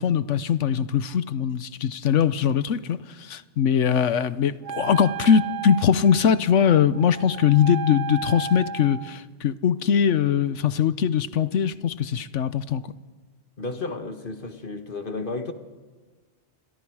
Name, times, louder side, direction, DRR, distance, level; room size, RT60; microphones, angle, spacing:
voice 1, 0.0-12.8, left 8 dB, 90° left, 1.2 m, -21 dB
Wind instrument woodwind instrument, 4.6-9.2, right 7 dB, 85° right, 1.2 m, -34 dB
voice 2, 13.6-15.5, left 3 dB, 45° left, 1.7 m, -32 dB
29.0 x 22.0 x 4.8 m
omnidirectional pair, 1.2 m